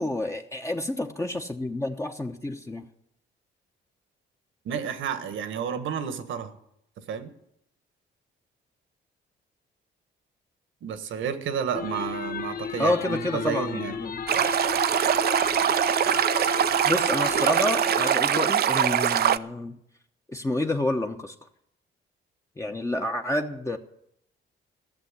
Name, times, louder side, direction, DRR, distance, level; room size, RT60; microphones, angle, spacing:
voice 1, 0.0-2.9 12.8-14.2 16.8-19.8 20.3-21.3 22.6-23.8, left 1 dB, 15° left, 1.0 m, -29 dB
voice 2, 4.6-6.5 7.1-7.3 10.8-13.9, right 7 dB, 75° right, 1.5 m, -31 dB
sound 1, 11.7-18.1, left 6 dB, 50° left, 0.8 m, -33 dB
Stream, 14.3-19.4, right 9 dB, 50° right, 0.5 m, -23 dB
15.0 x 7.0 x 9.8 m
cardioid pair, 90°, 20 cm